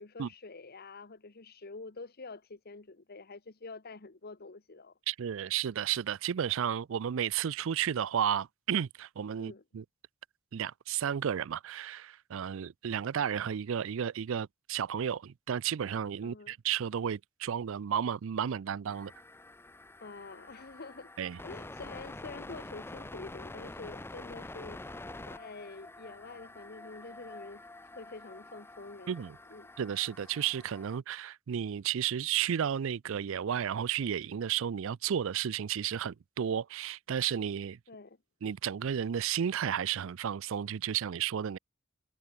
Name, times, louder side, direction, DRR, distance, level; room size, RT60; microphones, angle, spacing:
voice 1, 0.0-4.9 9.4-9.6 16.2-16.5 20.0-21.1 21.4-27.7 28.0-29.2 29.5-29.7 37.9-38.2, left 3 dB, 50° left, 1.2 m, -47 dB
voice 2, 5.1-9.8 10.5-19.1 21.2-21.4 29.1-29.4 29.8-37.8 38.4-41.6, right 9 dB, 65° right, 0.4 m, -32 dB
sound 1, 18.9-31.0, left 2 dB, 10° left, 0.6 m, -47 dB
head